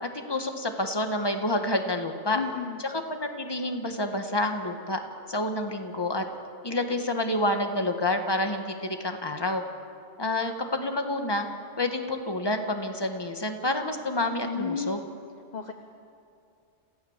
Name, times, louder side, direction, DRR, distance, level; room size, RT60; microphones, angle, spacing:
voice 1, 0.0-2.4 2.8-5.0 5.3-6.2 6.6-9.6 10.2-11.4 11.8-15.0, left 1 dB, 20° left, 5 dB, 1.6 m, -28 dB
voice 2, 2.3-2.8 14.5-15.0 15.5-15.7, left 6 dB, 40° left, 5 dB, 1.1 m, -32 dB
27.5 x 16.0 x 7.4 m, 2.4 s
omnidirectional pair, 1.2 m